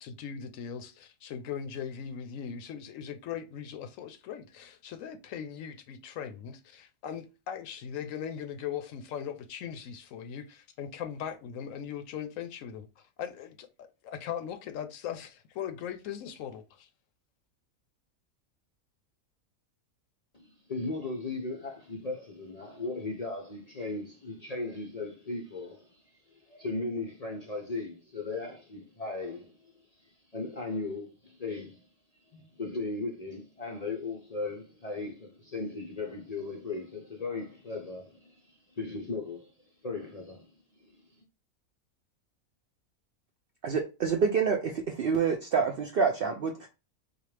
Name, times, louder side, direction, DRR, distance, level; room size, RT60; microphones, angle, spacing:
voice 1, 0.0-16.9, left 8 dB, 75° left, 0.9 m, -39 dB
voice 2, 20.3-29.7 30.0-31.9 32.3-39.5 39.8-40.5 40.8-41.2, left 3 dB, 50° left, 0.5 m, -37 dB
voice 3, 43.6-46.7, right 6 dB, 65° right, 0.5 m, -27 dB
4.2 x 2.3 x 3.2 m
omnidirectional pair, 1.5 m